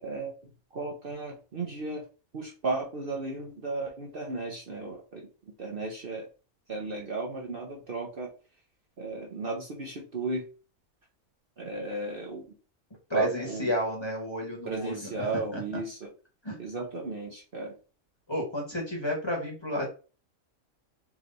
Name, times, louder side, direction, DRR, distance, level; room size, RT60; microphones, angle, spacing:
voice 1, 0.0-2.0 2.3-5.3 5.6-6.3 6.7-8.3 9.0-10.5 11.6-12.5 13.1-13.7 14.6-16.1 16.6-17.8, right 3 dB, 45° right, -1 dB, 0.9 m, -34 dB
voice 2, 13.1-15.6 16.4-16.6 18.3-19.9, left 1 dB, 20° left, -2 dB, 1.3 m, -32 dB
3.5 x 3.2 x 3.9 m, 0.35 s
omnidirectional pair, 1.5 m